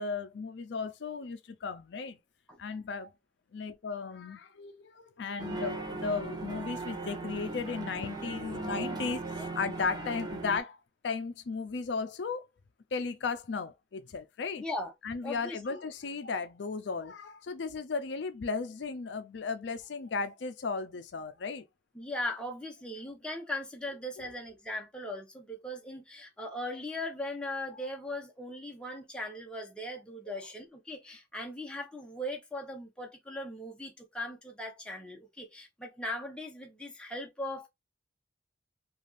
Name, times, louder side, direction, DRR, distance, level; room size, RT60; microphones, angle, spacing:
voice 1, 0.0-2.2 2.6-3.1 3.5-10.8 11.0-12.5 12.9-14.6 15.0-21.6 24.2-24.3, left 4 dB, 65° left, 0.4 m, -35 dB
sound 1, 5.4-10.6, right 2 dB, 20° right, 0.6 m, -38 dB
voice 2, 14.6-14.9 15.2-15.8 21.9-37.7, left 1 dB, 5° left, 0.9 m, -39 dB
3.4 x 2.4 x 2.5 m
head